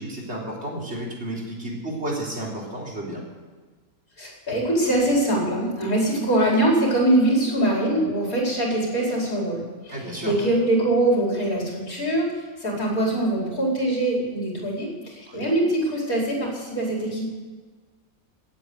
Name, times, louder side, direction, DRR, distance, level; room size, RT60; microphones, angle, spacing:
voice 1, 0.0-3.2 9.9-10.3 15.3-15.5, right 1 dB, 50° right, -2 dB, 4.1 m, -32 dB
voice 2, 4.2-17.3, right 1 dB, 80° left, -3 dB, 5.4 m, -23 dB
17.5 x 8.7 x 8.0 m, 1.4 s
omnidirectional pair, 1.5 m